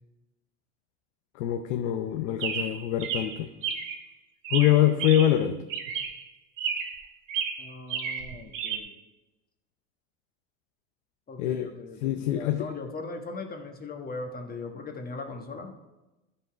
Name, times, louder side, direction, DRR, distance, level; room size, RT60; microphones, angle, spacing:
voice 1, 1.3-3.5 4.5-5.6 11.4-11.7 12.0-12.7, left 12 dB, 75° left, 6 dB, 0.7 m, -24 dB
Chirp tweet, 2.4-4.0 4.4-5.4 5.7-6.2 6.6-7.0 7.3-8.8, right 7 dB, 85° right, 1.3 m, -32 dB
voice 2, 7.6-9.0 11.3-15.7, left 3 dB, 25° left, 4 dB, 1.3 m, -39 dB
11.0 x 5.5 x 4.6 m, 1.1 s
supercardioid pair, 105°, 36 cm